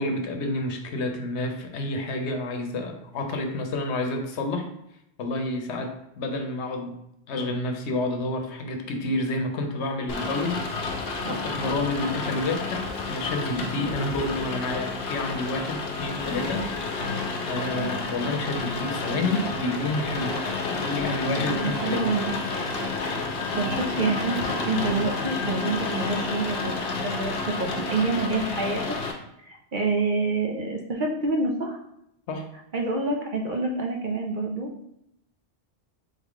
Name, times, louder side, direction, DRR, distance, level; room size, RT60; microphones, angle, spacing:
voice 1, 0.0-4.7 5.2-7.0 7.3-10.7 11.0-17.0 17.4-22.1 32.3-32.5, left 2 dB, 85° left, 5 dB, 1.0 m, -29 dB
Rain, 10.1-29.1, left 3 dB, 65° left, 0.8 m, -30 dB
voice 2, 11.2-11.6 12.0-12.1 17.7-17.9 21.3-22.2 23.5-28.9 29.5-31.8 32.7-34.7, right 3 dB, 55° right, 1 dB, 0.7 m, -27 dB
3.8 x 3.5 x 3.6 m, 0.81 s
omnidirectional pair, 1.1 m